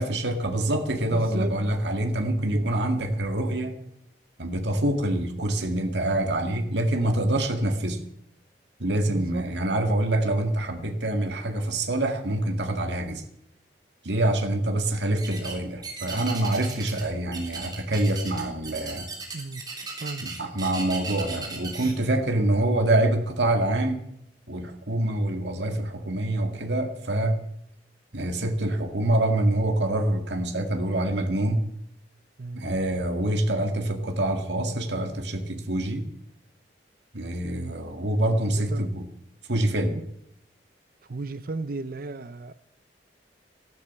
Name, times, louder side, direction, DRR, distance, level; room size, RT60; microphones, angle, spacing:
voice 1, 0.0-3.7 4.4-8.0 8.8-13.2 14.0-19.1 20.2-24.0 24.5-27.4 28.1-31.6 32.6-36.1 37.1-39.1 39.5-40.0, right 1 dB, 80° right, 5 dB, 2.0 m, -26 dB
voice 2, 1.1-1.5 2.5-2.7 9.0-9.4 19.3-19.6 20.0-20.3 26.5-26.6 32.4-32.6 37.4-37.7 38.5-38.9 39.9-40.0 41.1-42.5, right 3 dB, 55° right, 14 dB, 0.6 m, -35 dB
sound 1, 15.2-15.6 15.8-17.1 17.3-21.9, right 4 dB, 25° right, 3.3 m, -37 dB
14.0 x 12.0 x 7.0 m, 0.76 s
head